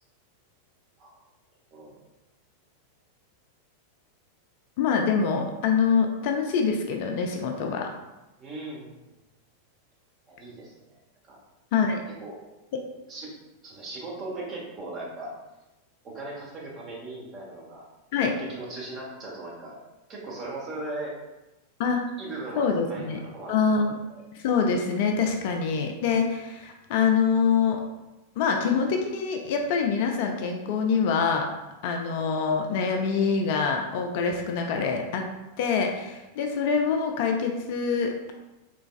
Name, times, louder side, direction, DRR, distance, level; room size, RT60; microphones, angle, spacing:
voice 1, 4.8-7.9 11.7-12.0 12.7-12.8 18.1-18.3 21.8-22.0 22.6-23.2 23.5-23.9 24.3-27.8 28.4-31.5 31.8-35.2 35.6-38.3, left 5 dB, 50° left, 3 dB, 0.4 m, -25 dB
voice 2, 8.4-9.2 10.3-11.0 11.2-11.4 12.2-12.3 13.1-13.3 13.6-15.3 16.0-17.9 18.2-19.8 20.1-21.1 22.2-24.3, right 2 dB, 30° right, -4 dB, 1.0 m, -38 dB
3.3 x 3.0 x 2.3 m, 1.0 s
figure-of-eight pair, 90°, 0 cm